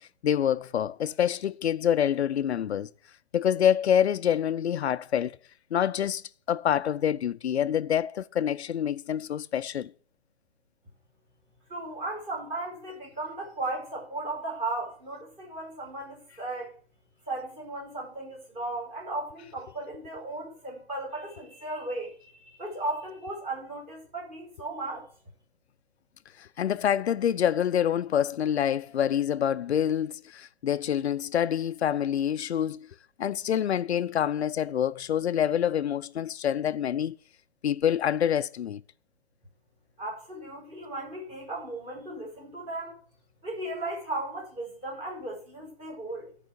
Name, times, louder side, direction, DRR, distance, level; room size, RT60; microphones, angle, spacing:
voice 1, 0.0-2.9 3.3-5.4 5.7-9.9 26.4-32.9 33.2-37.2 37.6-38.8, left 9 dB, 80° left, 0.6 m, -26 dB
voice 2, 11.7-16.7 17.3-25.1 40.0-43.0 43.4-46.3, right 2 dB, 15° right, 5.5 m, -36 dB
13.0 x 5.0 x 8.2 m
hypercardioid pair, 170°, 32 cm